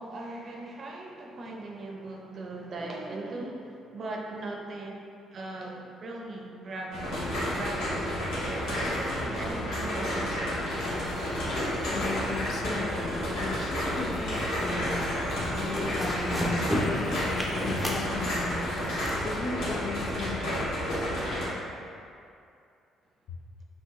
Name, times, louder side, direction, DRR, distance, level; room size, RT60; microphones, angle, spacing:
voice 1, 0.0-4.9 5.3-11.3, right 2 dB, 50° right, 0 dB, 0.6 m, -39 dB
sound 1, 6.9-21.5, equal, 85° left, 1.4 m, -31 dB
sound 2, 10.9-17.8, left 1 dB, 30° left, 1.0 m, -49 dB
voice 2, 11.9-20.8, left 3 dB, 60° left, 0 dB, 0.6 m, -36 dB
sound 3, 14.0-14.7 15.0-15.3 15.6-19.1, equal, 10° left, 0.8 m, -32 dB
5.3 x 3.0 x 3.0 m, 2.4 s
cardioid pair, 85°, 0 cm